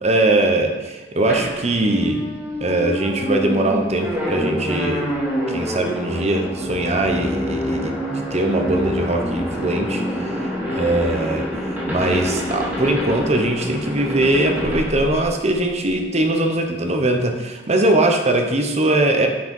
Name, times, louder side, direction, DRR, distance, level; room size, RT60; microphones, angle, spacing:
voice 1, 0.0-2.3 2.6-5.1 5.5-11.5 11.9-19.3, right 1 dB, 35° right, 3 dB, 0.9 m, -21 dB
sound 1, 1.3-15.8, equal, 10° right, 2.3 m, -26 dB
7.9 x 6.0 x 5.4 m, 1.2 s
head